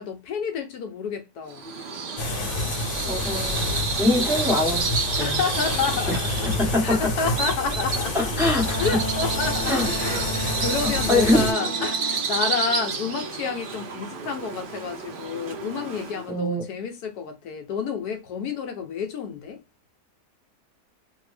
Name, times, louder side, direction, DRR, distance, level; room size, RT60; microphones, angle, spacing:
voice 1, 0.0-1.7 5.2-6.5 6.8-8.2 8.7-19.6, left 5 dB, 75° left, 1.1 m, -30 dB
Bird vocalization bird call bird song, 1.5-16.3, right 5 dB, 70° right, 0.5 m, -30 dB
sound 1, 2.2-11.5, left 2 dB, 60° left, 1.2 m, -28 dB
voice 2, 3.1-3.7 4.0-4.9 5.2-5.4 6.1-6.2 6.6-7.0 8.1-8.8 9.7-9.9 11.1-11.4 16.3-16.6, left 2 dB, ahead, 0.9 m, -23 dB
Wind instrument woodwind instrument, 8.6-12.3, right 2 dB, 35° right, 1.1 m, -34 dB
2.7 x 2.7 x 3.1 m
omnidirectional pair, 1.8 m